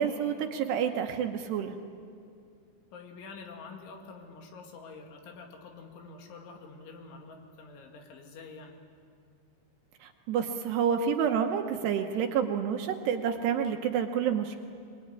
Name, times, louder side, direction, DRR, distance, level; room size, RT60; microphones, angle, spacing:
voice 1, 0.0-1.8 10.0-14.6, right 8 dB, 75° right, 5 dB, 2.8 m, -29 dB
voice 2, 2.9-8.8, left 4 dB, 75° left, 3 dB, 4.6 m, -47 dB
24.5 x 21.5 x 9.8 m, 2.4 s
omnidirectional pair, 5.6 m